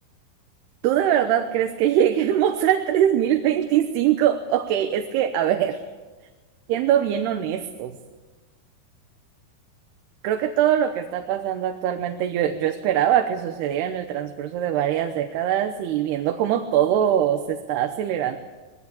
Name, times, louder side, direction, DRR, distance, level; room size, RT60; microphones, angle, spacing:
voice 1, 0.8-5.8 6.7-8.0 10.2-18.4, right 10 dB, 85° right, 6 dB, 3.1 m, -22 dB
21.0 x 17.5 x 8.6 m, 1.3 s
omnidirectional pair, 4.6 m